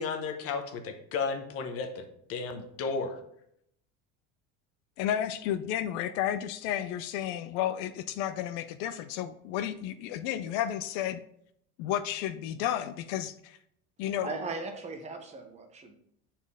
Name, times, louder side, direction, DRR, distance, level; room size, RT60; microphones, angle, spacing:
voice 1, 0.0-3.2, left 4 dB, 45° left, 6 dB, 0.9 m, -34 dB
voice 2, 5.0-11.2 11.8-13.6 14.0-14.3, left 11 dB, 70° left, 12 dB, 0.4 m, -32 dB
voice 3, 14.2-16.0, right 3 dB, 20° right, 5 dB, 0.7 m, -38 dB
7.1 x 4.3 x 3.5 m, 0.72 s
cardioid pair, 155°, 31 cm